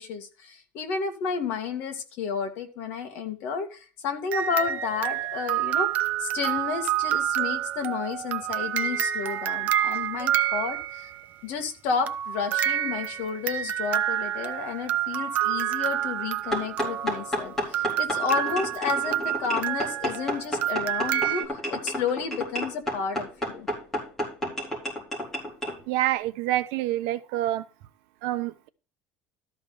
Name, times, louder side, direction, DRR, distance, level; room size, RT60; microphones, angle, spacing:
voice 1, 0.0-5.9 6.2-11.1 11.4-23.7, left 6 dB, 50° left, 2.2 m, -31 dB
sound 1, 4.3-11.2 12.1-21.5, right 11 dB, 35° right, 0.6 m, -28 dB
sound 2, 16.5-25.8, equal, 10° left, 4.1 m, -31 dB
voice 2, 25.9-27.6 28.2-28.7, right 14 dB, 60° right, 0.9 m, -27 dB
13.0 x 5.2 x 6.0 m
cardioid pair, 175°, 5 cm